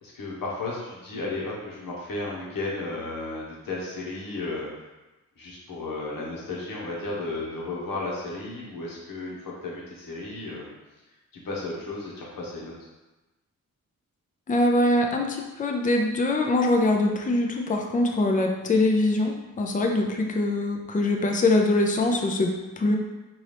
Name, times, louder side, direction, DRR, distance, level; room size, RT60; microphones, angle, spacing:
voice 1, 0.0-4.7 5.4-10.7 11.3-12.7, left 2 dB, 85° left, -4 dB, 1.1 m, -34 dB
voice 2, 14.5-23.0, left 2 dB, 25° left, 2 dB, 0.5 m, -23 dB
4.2 x 2.7 x 3.3 m, 1.1 s
cardioid pair, 70°, 33 cm